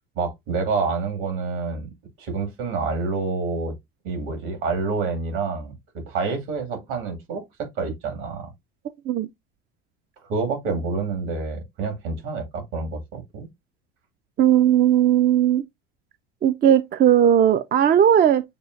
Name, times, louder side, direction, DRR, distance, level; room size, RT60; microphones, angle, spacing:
voice 1, 0.1-1.9 2.2-3.7 4.0-8.5 10.2-13.5, right 4 dB, 70° right, 2.2 m, -28 dB
voice 2, 14.4-15.6 16.4-18.4, right 10 dB, 30° right, 0.4 m, -17 dB
6.9 x 2.4 x 2.5 m
hypercardioid pair, 80°, 32 cm